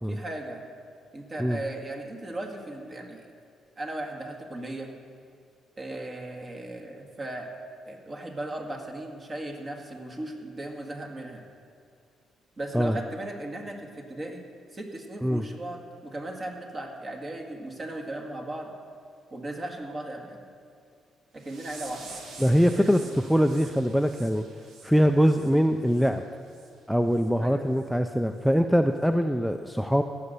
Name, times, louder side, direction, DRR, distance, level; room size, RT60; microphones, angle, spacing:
voice 1, 0.1-0.7 1.1-3.3 3.8-4.9 5.8-7.5 7.9-11.4 12.6-14.4 14.7-18.7 19.3-20.4 21.3-22.2 22.7-22.9 27.4-27.7, right 1 dB, 35° right, 2 dB, 1.9 m, -37 dB
sound 1, 21.4-26.1 26.5-26.7 27.1-27.3 27.8-27.9 28.4-28.5, right 3 dB, 75° right, 1.8 m, -47 dB
voice 2, 22.4-23.0 23.3-24.5 24.8-26.2 26.9-30.0, equal, ahead, 7 dB, 0.4 m, -23 dB
17.0 x 6.6 x 6.8 m, 2.4 s
cardioid pair, 90°, 0 cm